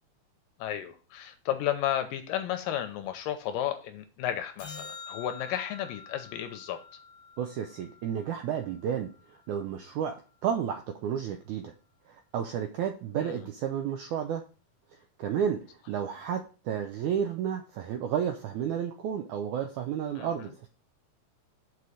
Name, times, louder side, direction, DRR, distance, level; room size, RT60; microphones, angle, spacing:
voice 1, 0.6-6.8 13.2-13.4 20.2-20.5, left 11 dB, 80° left, 8 dB, 2.1 m, -33 dB
sound 1, 4.6-9.1 15.6-15.7, left 5 dB, 60° left, 1.3 m, -47 dB
voice 2, 7.4-11.7 12.1-14.4 15.2-20.7, right 8 dB, 85° right, 5 dB, 1.7 m, -32 dB
6.9 x 4.7 x 4.9 m, 0.36 s
omnidirectional pair, 4.2 m